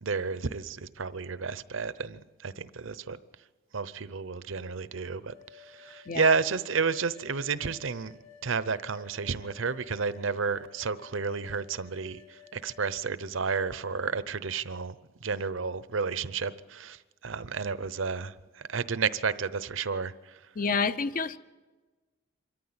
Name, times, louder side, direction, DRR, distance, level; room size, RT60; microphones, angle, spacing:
voice 1, 0.0-3.2 3.7-8.1 8.4-15.0 15.2-20.4, right 5 dB, 80° right, 0.8 m, -31 dB
sound 1, 5.3-12.9, left 6 dB, 75° left, 3.7 m, -54 dB
voice 2, 20.6-21.4, left 5 dB, 45° left, 0.7 m, -28 dB
25.5 x 13.5 x 8.8 m
head